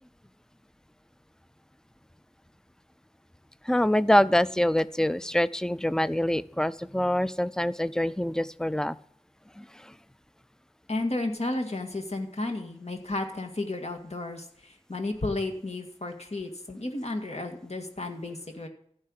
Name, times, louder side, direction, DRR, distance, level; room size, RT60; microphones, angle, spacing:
voice 1, 3.6-9.0 9.6-9.9, left 1 dB, 5° left, 17 dB, 0.5 m, -25 dB
voice 2, 10.9-18.7, left 2 dB, 60° left, 3 dB, 2.1 m, -33 dB
14.5 x 5.7 x 9.7 m, 0.64 s
wide cardioid pair, 40°, 13 cm